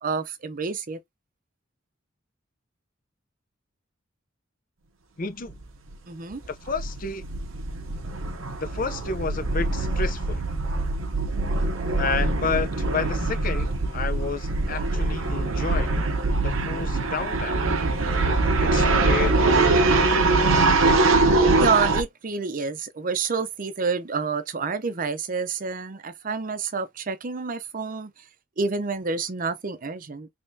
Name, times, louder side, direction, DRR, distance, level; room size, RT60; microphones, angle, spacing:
voice 1, 0.0-1.0 6.1-6.4 21.6-28.1 28.6-30.3, right 5 dB, 45° right, 0.6 m, -28 dB
voice 2, 5.2-5.6 6.5-7.3 8.6-10.4 12.0-16.1 16.4-17.6 18.6-20.6, left 4 dB, 45° left, 0.6 m, -31 dB
sound 1, 5.5-5.6 5.9-6.0 6.3-22.0, right 3 dB, 85° right, 0.8 m, -23 dB
3.6 x 3.5 x 2.7 m
head